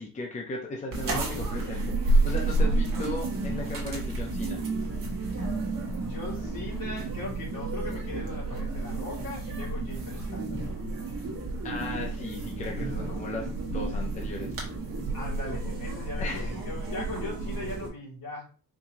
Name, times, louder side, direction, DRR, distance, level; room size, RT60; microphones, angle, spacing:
voice 1, 0.0-4.6 11.6-14.5 16.2-16.6, left 2 dB, 20° left, 0 dB, 0.6 m, -37 dB
sound 1, 0.9-17.9, right 2 dB, 55° right, 1.4 m, -30 dB
voice 2, 6.0-10.7 15.1-18.5, left 2 dB, 60° left, -3 dB, 2.1 m, -39 dB
4.5 x 2.7 x 2.8 m, 0.37 s
wide cardioid pair, 155°, 38 cm